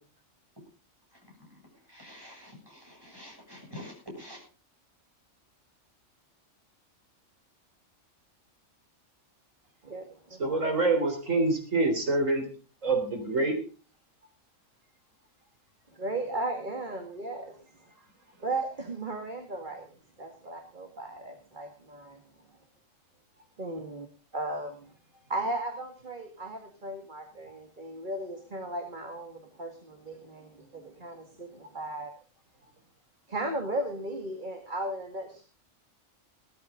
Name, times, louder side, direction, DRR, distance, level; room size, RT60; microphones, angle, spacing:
voice 1, 1.9-4.4, left 1 dB, 15° right, 0 dB, 7.6 m, -46 dB
voice 2, 9.8-10.4 15.9-17.5 18.4-19.9 20.2-22.2 23.6-24.1 24.3-24.9 25.3-32.1 33.3-35.4, right 2 dB, 40° right, 4 dB, 2.3 m, -36 dB
voice 3, 10.4-12.4 12.8-13.6, right 2 dB, 85° right, 4 dB, 4.3 m, -26 dB
17.5 x 14.0 x 3.8 m, 0.36 s
omnidirectional pair, 1.3 m